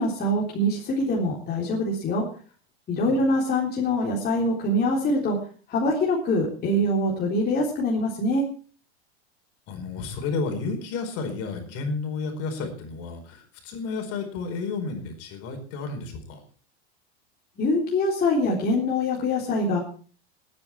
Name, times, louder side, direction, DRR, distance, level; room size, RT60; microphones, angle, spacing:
voice 1, 0.0-2.2 2.9-5.4 5.7-8.5 17.6-19.8, left 1 dB, 30° left, -3 dB, 3.7 m, -24 dB
voice 2, 9.7-16.4, left 4 dB, 50° left, 5 dB, 4.7 m, -32 dB
19.5 x 9.7 x 4.6 m, 0.41 s
supercardioid pair, 120°, 32 cm